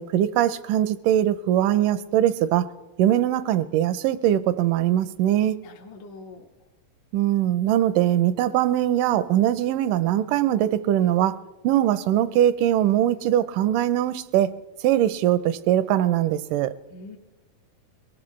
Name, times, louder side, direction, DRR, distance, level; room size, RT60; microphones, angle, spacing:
voice 1, 0.0-2.7 3.0-5.6 7.1-14.5 14.8-16.8, right 12 dB, 80° right, 14 dB, 2.0 m, -21 dB
voice 2, 5.6-6.5 16.9-17.2, left 2 dB, 70° left, 0 dB, 2.5 m, -43 dB
22.5 x 19.5 x 3.2 m, 1.1 s
omnidirectional pair, 4.1 m